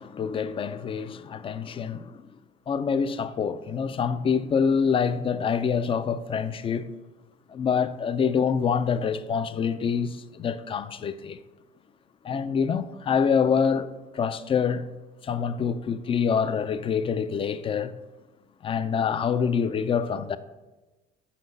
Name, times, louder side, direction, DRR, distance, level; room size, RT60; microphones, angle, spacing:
voice 1, 0.0-2.2 2.7-6.9 7.5-11.4 12.2-14.9 15.2-17.9 18.6-20.4, left 6 dB, 30° left, 0.4 m, -26 dB
5.8 x 5.2 x 6.5 m
cardioid pair, 110°, 17 cm